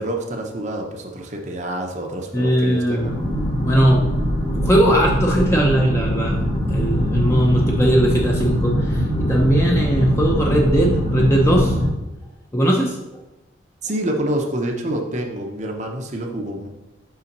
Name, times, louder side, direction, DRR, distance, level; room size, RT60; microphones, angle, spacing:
voice 1, 0.0-3.1 13.8-16.7, right 1 dB, 35° right, 2 dB, 0.8 m, -27 dB
voice 2, 2.3-3.1 3.6-4.0 4.5-6.4 6.7-11.8 12.5-13.0, equal, 15° left, -2 dB, 0.7 m, -19 dB
sound 1, 3.0-11.9, equal, 40° left, 2.0 m, -22 dB
5.7 x 5.6 x 5.3 m, 1.0 s
head